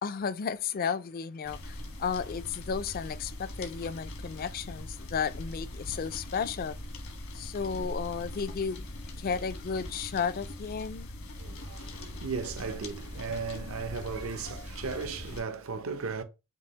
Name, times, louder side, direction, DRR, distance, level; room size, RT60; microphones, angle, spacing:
voice 1, 0.0-6.8 7.3-8.8 9.2-11.1, left 6 dB, 45° left, 0.3 m, -33 dB
sound 1, 1.4-15.4, left 1 dB, 75° left, 1.3 m, -41 dB
voice 2, 11.4-16.2, right 5 dB, 75° right, 0.7 m, -36 dB
6.6 x 2.7 x 2.9 m
head